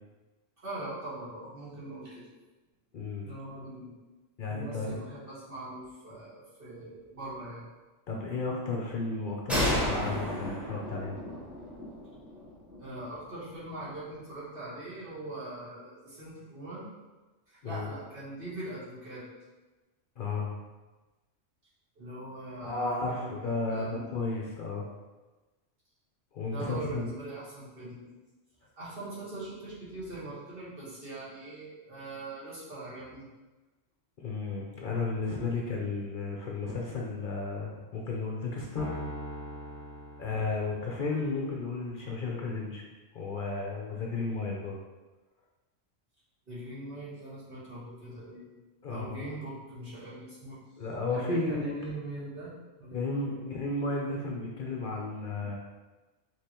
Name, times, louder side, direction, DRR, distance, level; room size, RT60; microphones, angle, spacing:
voice 1, 0.6-2.2 3.2-3.9 4.4-7.7 12.8-16.9 17.5-19.2 21.9-24.1 26.5-28.0 28.7-33.2 46.5-48.4 48.9-50.6 51.1-52.5 52.8-53.5, right 2 dB, 50° right, -9 dB, 1.7 m, -41 dB
voice 2, 2.9-3.3 4.4-4.9 8.1-11.2 17.6-17.9 20.2-20.5 22.6-24.9 26.3-27.1 34.2-38.9 40.2-42.8 43.1-44.8 48.8-49.3 50.8-51.8 52.9-55.5, left 3 dB, 55° left, -1 dB, 0.7 m, -33 dB
sound 1, 9.5-13.0, left 1 dB, ahead, 1.0 m, -32 dB
sound 2, 38.8-41.2, right 1 dB, 20° left, 1.4 m, -41 dB
5.2 x 3.3 x 2.9 m, 1.2 s
omnidirectional pair, 1.3 m